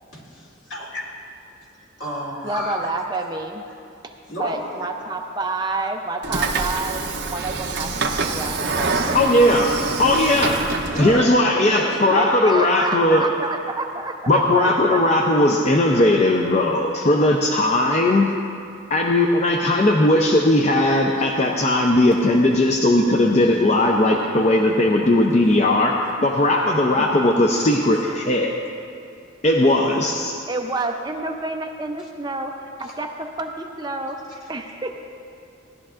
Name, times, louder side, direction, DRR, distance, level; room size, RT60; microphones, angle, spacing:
voice 1, 0.1-1.0 2.0-2.9 3.7-3.8 4.3-4.7 10.9-11.3 11.5-12.0 27.5-27.9, equal, 75° left, -4 dB, 2.6 m, -31 dB
voice 2, 2.4-3.6 4.4-10.0 11.8-15.0 26.9-27.4 30.5-34.9, right 2 dB, 20° right, 3 dB, 0.5 m, -29 dB
Train / Sliding door, 6.2-11.3, right 3 dB, 55° right, 0.7 m, -25 dB
voice 3, 9.1-10.7 11.0-13.3 14.3-18.3 18.9-26.0 26.2-28.5 29.4-30.3, left 1 dB, 35° left, 1 dB, 0.5 m, -18 dB
17.5 x 11.5 x 2.5 m, 2.5 s
head